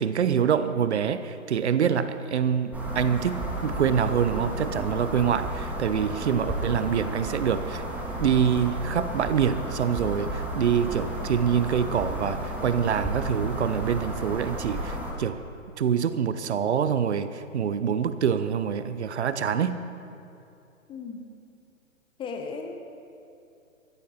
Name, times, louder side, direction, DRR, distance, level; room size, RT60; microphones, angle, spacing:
voice 1, 0.0-7.8 8.2-15.4 15.8-19.8, right 7 dB, 55° right, 12 dB, 0.9 m, -25 dB
sound 1, 2.7-15.1, right 1 dB, 5° right, 1.9 m, -33 dB
voice 2, 20.9-21.2 22.2-22.8, left 5 dB, 10° left, 4 dB, 0.9 m, -35 dB
23.0 x 14.0 x 4.3 m, 2.8 s
figure-of-eight pair, 125°, 40 cm